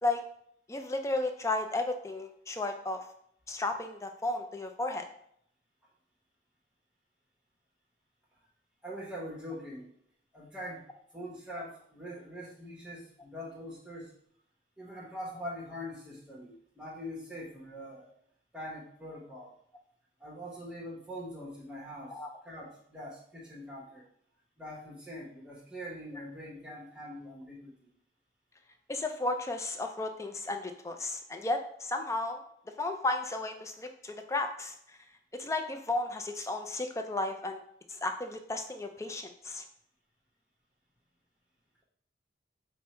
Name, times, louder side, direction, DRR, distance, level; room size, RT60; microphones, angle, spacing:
voice 1, 0.7-3.0 3.5-5.0 22.1-22.3 28.9-32.4 32.8-35.0 35.4-37.6 37.9-39.6, left 2 dB, 15° left, 5 dB, 0.4 m, -33 dB
voice 2, 8.8-9.9 10.3-10.9 11.1-14.1 14.8-18.1 18.5-19.5 20.2-22.2 22.4-24.0 24.6-27.9, equal, 5° right, -4 dB, 1.0 m, -43 dB
5.3 x 2.1 x 4.2 m, 0.69 s
head